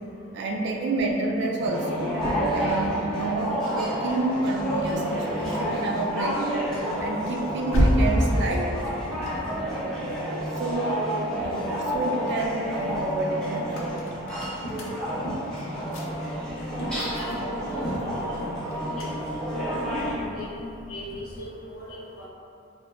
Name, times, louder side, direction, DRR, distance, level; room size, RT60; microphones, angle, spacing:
voice 1, 0.3-2.2 2.5-6.4 7.0-8.8 9.6-11.0 11.3-14.0, right 2 dB, 55° right, 1 dB, 0.3 m, -29 dB
sound 1, 1.6-20.2, equal, ahead, 0.6 m, -30 dB
sound 2, 5.5-11.4 11.8-21.6, equal, 70° left, 0.4 m, -32 dB
voice 2, 16.7-19.1 19.5-22.3, equal, 90° left, -8 dB, 0.8 m, -37 dB
3.6 x 2.1 x 2.2 m, 2.6 s
head